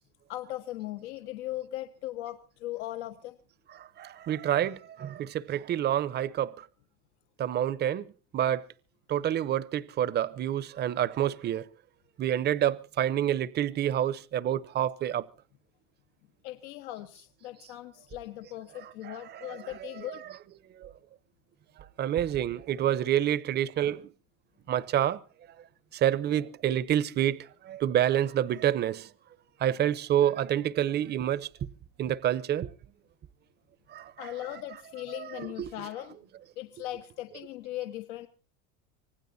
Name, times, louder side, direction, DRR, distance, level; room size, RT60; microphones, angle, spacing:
voice 1, 0.3-3.4 16.4-20.2 34.2-36.2 36.6-38.3, left 15 dB, 80° left, 1.3 m, -39 dB
voice 2, 3.8-6.7 7.4-8.7 9.1-11.7 12.2-15.2 18.8-19.7 20.8-20.9 22.0-24.1 24.7-25.2 25.9-29.1 29.6-31.5 32.0-32.7 33.9-34.3 35.1-35.7, right 11 dB, 30° right, 0.7 m, -28 dB
25.5 x 18.0 x 2.7 m
cardioid pair, 140°, 34 cm